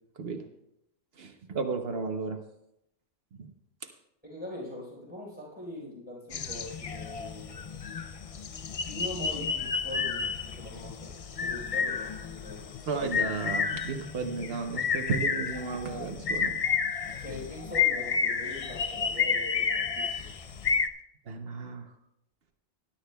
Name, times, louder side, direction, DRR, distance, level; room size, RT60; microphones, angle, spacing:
voice 1, 1.2-2.4 3.4-3.5 3.8-3.9 12.9-16.6 21.3-21.9, right 4 dB, 75° right, 5 dB, 1.1 m, -33 dB
voice 2, 4.2-7.6 8.8-12.7 17.2-20.3, left 1 dB, 10° right, -5 dB, 4.4 m, -42 dB
sound 1, 6.3-20.9, left 6 dB, 45° left, 0.5 m, -31 dB
19.5 x 11.5 x 2.3 m, 0.82 s
omnidirectional pair, 1.0 m